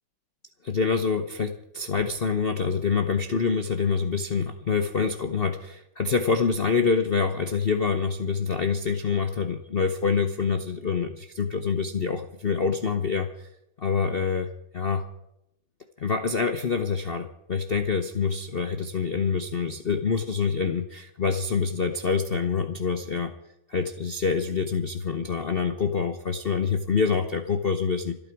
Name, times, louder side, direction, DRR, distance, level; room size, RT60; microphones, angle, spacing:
voice 1, 0.6-13.5 13.8-15.0 16.0-23.3 23.7-28.2, left 5 dB, 65° left, 7 dB, 0.5 m, -26 dB
26.5 x 9.0 x 4.6 m, 0.82 s
omnidirectional pair, 2.2 m